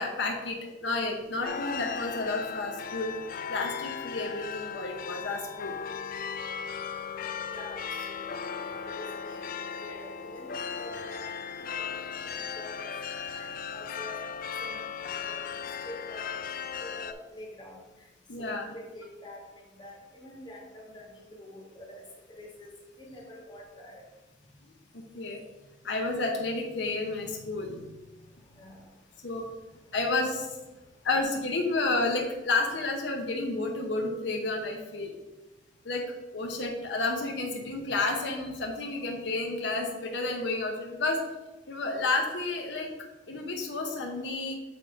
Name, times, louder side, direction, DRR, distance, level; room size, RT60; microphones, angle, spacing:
voice 1, 0.0-3.2 3.5-5.7 18.3-18.7 24.9-25.4 25.8-28.0 29.2-29.4 29.9-30.5 31.0-35.1 35.8-36.0 36.3-41.2 41.7-42.9 43.3-44.6, left 3 dB, 70° left, 2 dB, 0.8 m, -31 dB
sound 1, 1.4-17.1, left 6 dB, 50° left, 0.3 m, -37 dB
voice 2, 7.5-9.5 9.8-11.3 11.6-12.9 13.2-14.2 14.6-14.8 15.2-16.2 16.8-18.1 18.4-22.0 22.3-22.7 23.0-24.0 28.6-28.9, left 1 dB, 25° left, -2 dB, 1.5 m, -47 dB
6.8 x 3.1 x 5.1 m, 1.1 s
head